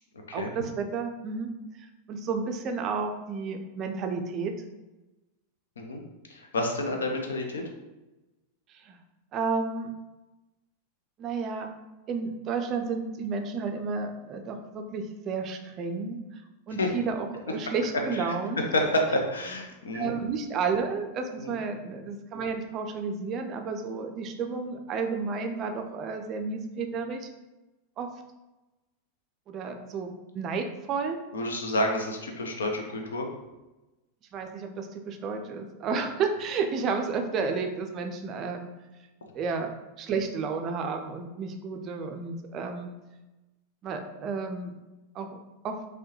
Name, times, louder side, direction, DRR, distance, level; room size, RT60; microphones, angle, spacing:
voice 1, 0.3-1.5 1.8-4.5 8.8-9.0 9.3-9.9 11.2-11.7 12.1-16.4 16.7-18.6 19.9-27.3 28.0-28.1 29.5-31.2 34.3-38.7 39.3-42.9 43.8-44.7 45.1-45.4 45.6-45.8, right 5 dB, 35° right, 5 dB, 0.4 m, -31 dB
voice 2, 6.3-7.6 16.8-16.9 18.1-18.4 18.7-20.1 21.4-21.5 31.3-33.3, left 1 dB, 70° left, 2 dB, 0.6 m, -29 dB
4.4 x 2.2 x 3.0 m, 1.1 s
figure-of-eight pair, 90°, 0 cm